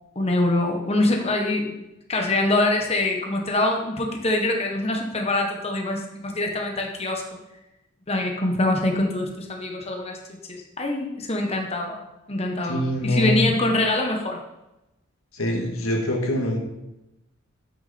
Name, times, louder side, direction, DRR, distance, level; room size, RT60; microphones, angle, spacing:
voice 1, 0.1-7.4 8.1-10.2 10.5-12.0 12.3-14.4, left 2 dB, 30° left, 2 dB, 1.2 m, -24 dB
voice 2, 12.6-13.4 15.3-16.6, left 1 dB, 85° left, 1 dB, 1.9 m, -24 dB
13.5 x 6.3 x 4.3 m, 0.95 s
head